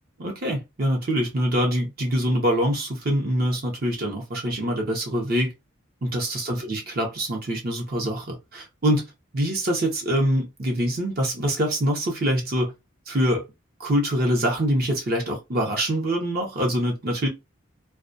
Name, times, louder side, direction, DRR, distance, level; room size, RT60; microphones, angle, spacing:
voice 1, 0.2-5.5 6.0-9.1 9.3-12.7 13.1-13.4 13.8-17.3, equal, 45° right, 0.7 m, -24 dB
2.2 x 2.2 x 2.5 m
head